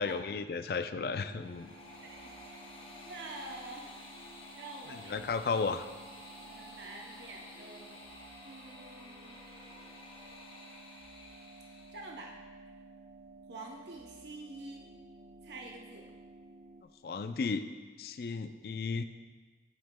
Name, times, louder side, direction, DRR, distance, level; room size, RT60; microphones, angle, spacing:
voice 1, 0.0-1.7 4.9-5.9 17.0-17.7 18.0-19.0, left 4 dB, 60° left, 11 dB, 0.3 m, -34 dB
sound 1, 1.0-16.8, right 2 dB, 45° right, 0.5 m, -54 dB
sound 2, 1.1-12.2, left 2 dB, 30° left, 0.8 m, -52 dB
voice 2, 2.0-3.9 4.6-5.4 6.4-8.0 8.4-9.8 11.9-12.3 12.7-12.8 13.5-14.8 15.4-16.0, right 2 dB, 80° right, -1 dB, 0.7 m, -47 dB
8.9 x 7.7 x 2.2 m, 1.4 s
head